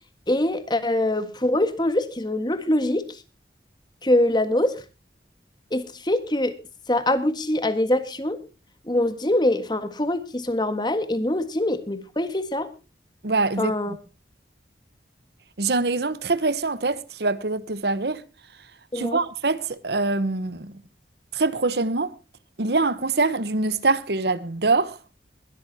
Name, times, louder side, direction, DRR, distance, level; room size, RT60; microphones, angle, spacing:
voice 1, 0.3-3.1 4.0-4.8 5.7-6.6 6.9-8.4 8.8-12.7 13.6-13.9 18.9-19.2, left 1 dB, 25° left, 1.6 m, -23 dB
voice 2, 13.2-13.7 15.6-18.2 18.9-20.7 21.3-22.1 22.6-25.0, right 3 dB, 65° right, 1.0 m, -24 dB
21.5 x 13.0 x 2.8 m
head